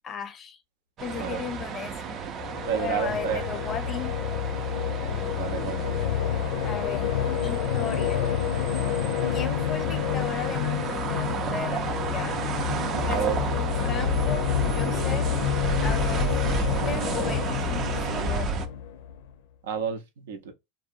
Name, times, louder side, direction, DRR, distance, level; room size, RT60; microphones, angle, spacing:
voice 1, 0.0-0.6 1.0-2.2 2.7-4.1 6.6-8.2 9.3-12.4 13.0-13.2 13.5-15.3 15.8-18.7, left 7 dB, 30° left, 0.5 m, -36 dB
sound 1, 1.0-18.7, right 5 dB, 35° right, 0.4 m, -32 dB
sound 2, 2.3-19.3, left 8 dB, 75° left, 0.5 m, -28 dB
voice 2, 2.7-3.4 5.3-6.0 13.1-13.4 19.6-20.5, right 7 dB, 85° right, 0.6 m, -30 dB
2.7 x 2.0 x 2.4 m
supercardioid pair, 130°, 0 cm